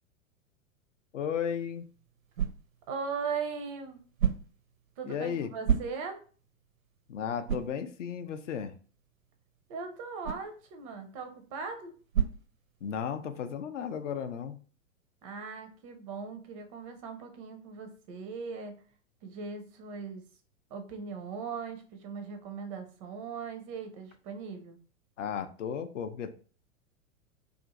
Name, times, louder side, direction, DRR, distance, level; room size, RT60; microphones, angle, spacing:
voice 1, 1.1-1.9 5.1-5.5 7.1-8.8 12.8-14.6 25.2-26.3, left 7 dB, 60° left, 0.5 m, -34 dB
sound 1, 1.5-13.2, right 8 dB, 80° right, 0.5 m, -36 dB
voice 2, 2.9-4.0 5.0-6.2 9.7-12.0 15.2-18.8 19.2-20.2 20.7-24.8, right 5 dB, 25° right, 0.4 m, -39 dB
2.5 x 2.4 x 3.9 m
figure-of-eight pair, 100°, 41 cm